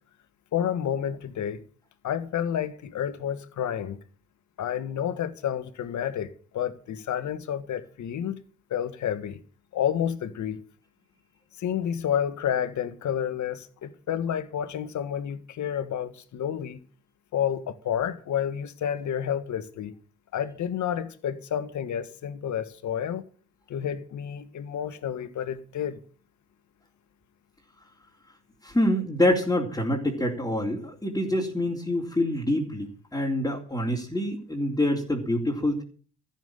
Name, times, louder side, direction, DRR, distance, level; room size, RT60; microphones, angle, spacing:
voice 1, 0.5-1.6 2.0-4.0 4.6-8.4 8.7-9.4 9.7-10.6 11.6-16.8 17.3-19.9 20.3-23.2 23.7-26.0, left 9 dB, 55° left, 1.7 m, -30 dB
voice 2, 28.6-35.8, left 1 dB, 10° left, 3.9 m, -26 dB
14.5 x 7.5 x 9.2 m
hypercardioid pair, 50°, 35 cm